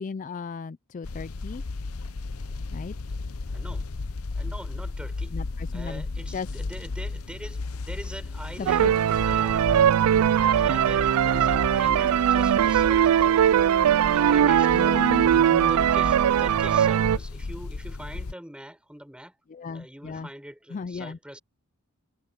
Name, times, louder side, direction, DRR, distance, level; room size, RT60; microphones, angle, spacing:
voice 1, 0.0-1.6 2.7-2.9 5.3-6.1 6.3-6.5 8.6-8.9 14.7-15.7 19.5-20.3 20.7-21.2, left 5 dB, 35° left, 0.3 m, -35 dB
Inside car raining outside, 1.0-18.3, left 3 dB, 75° left, 0.8 m, -35 dB
voice 2, 3.5-5.4 5.7-9.0 9.2-9.7 10.3-13.6 14.1-19.4 19.7-21.4, equal, 5° right, 5.7 m, -43 dB
sound 1, 8.7-17.2, right 9 dB, 80° right, 0.3 m, -20 dB
head